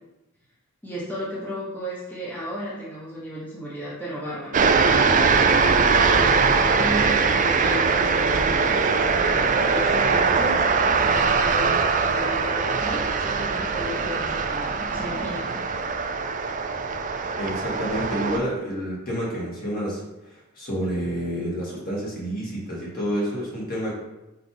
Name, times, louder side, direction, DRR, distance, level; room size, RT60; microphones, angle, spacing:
voice 1, 0.8-4.6 5.1-15.6, equal, 10° left, -8 dB, 1.1 m, -34 dB
sound 1, 4.5-18.4, right 4 dB, 35° right, 0.4 m, -21 dB
voice 2, 17.4-20.0 20.5-23.9, equal, 45° left, -5 dB, 2.1 m, -29 dB
5.8 x 5.2 x 3.5 m, 0.97 s
head